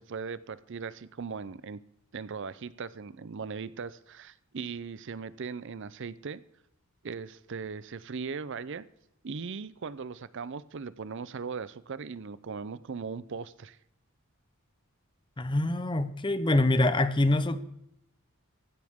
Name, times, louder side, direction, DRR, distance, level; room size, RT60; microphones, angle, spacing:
voice 1, 0.0-1.8 2.1-6.4 7.0-8.8 9.2-13.8, right 5 dB, 55° right, 17 dB, 0.5 m, -38 dB
voice 2, 15.4-17.6, left 2 dB, 20° left, 13 dB, 0.7 m, -25 dB
15.5 x 13.5 x 3.6 m, 0.80 s
head